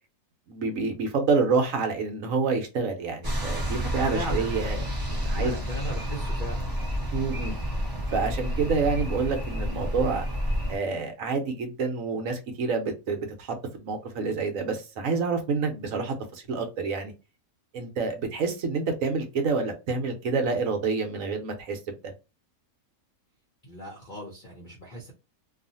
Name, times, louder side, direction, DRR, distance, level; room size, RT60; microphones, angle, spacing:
voice 1, 0.5-5.6 7.1-7.5 8.1-10.2 10.7-17.1 17.7-21.8 22.0-22.1, right 4 dB, 60° right, 1.1 m, -28 dB
sound 1, 3.2-10.8, equal, 20° right, 0.6 m, -30 dB
voice 2, 4.1-4.6 5.3-6.7 23.6-25.1, equal, 50° left, 0.6 m, -37 dB
2.7 x 2.4 x 2.6 m
omnidirectional pair, 1.7 m